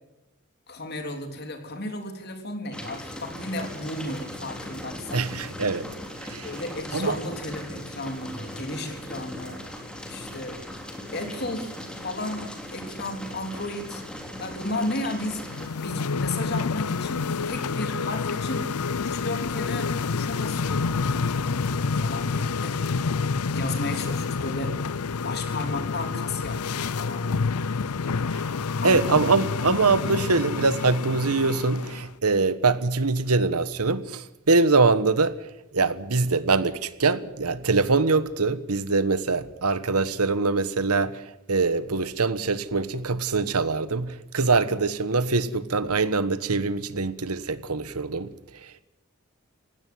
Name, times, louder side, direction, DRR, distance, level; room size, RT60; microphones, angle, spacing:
voice 1, 0.7-5.2 6.4-9.6 10.1-10.6 11.1-11.7 12.0-14.0 14.4-18.7 19.0-21.0 22.0-22.7 23.5-24.8 25.2-27.6 28.8-29.2, left 2 dB, 45° left, 3.6 m, -34 dB
sound 1, 2.7-15.7, equal, 5° left, 3.3 m, -39 dB
voice 2, 5.1-5.9 6.2-6.5 6.9-7.2 28.3-28.5 28.8-48.8, right 3 dB, 90° right, 1.3 m, -24 dB
sound 2, 15.5-32.1, left 4 dB, 90° left, 0.6 m, -28 dB
19.0 x 16.5 x 9.5 m
head